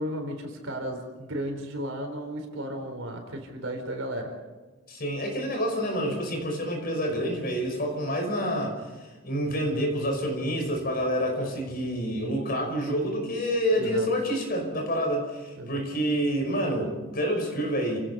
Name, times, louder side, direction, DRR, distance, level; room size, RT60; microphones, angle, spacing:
voice 1, 0.0-4.3 13.7-14.1 15.6-15.8, equal, 65° right, 4 dB, 4.7 m, -34 dB
voice 2, 4.9-18.0, equal, 45° left, 2 dB, 5.4 m, -28 dB
29.5 x 17.5 x 5.5 m, 1.2 s
head